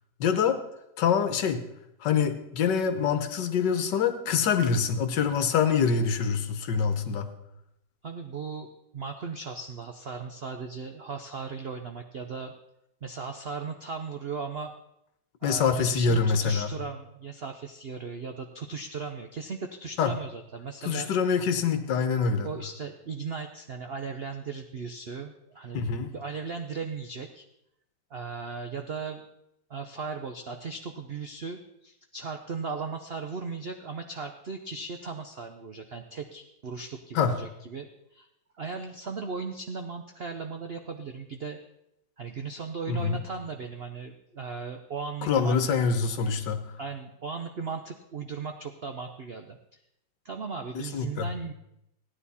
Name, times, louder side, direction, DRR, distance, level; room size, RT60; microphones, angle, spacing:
voice 1, 0.2-0.6 1.0-1.6 2.0-7.3 15.4-16.7 20.0-20.1 20.8-22.5 25.7-26.1 37.1-37.4 42.9-43.2 45.2-46.7 50.9-51.3, left 6 dB, 70° left, 8 dB, 1.6 m, -25 dB
voice 2, 8.0-8.7 8.9-12.5 13.0-14.7 15.4-21.4 22.4-25.8 26.1-27.4 28.1-29.2 29.7-38.3 38.6-41.6 42.2-45.8 46.8-49.6 50.2-51.5, right 5 dB, 65° right, 6 dB, 0.6 m, -37 dB
15.5 x 10.0 x 4.2 m, 0.82 s
omnidirectional pair, 2.0 m